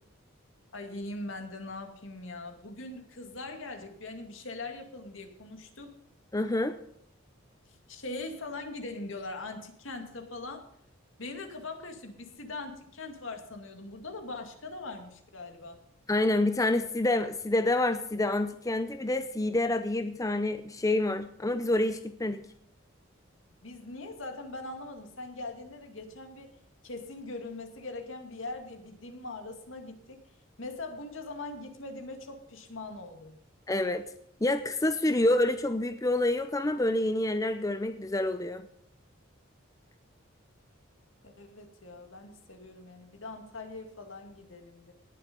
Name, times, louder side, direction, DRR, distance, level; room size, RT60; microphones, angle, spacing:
voice 1, 0.7-6.0 7.7-10.7 11.2-15.8 23.6-26.5 26.8-30.2 30.6-33.4 41.2-44.9, left 2 dB, 75° left, 5 dB, 2.3 m, -41 dB
voice 2, 6.3-6.7 16.1-22.4 33.7-34.0 34.4-38.6, left 1 dB, 15° left, 9 dB, 0.6 m, -27 dB
18.5 x 7.2 x 5.3 m, 0.69 s
head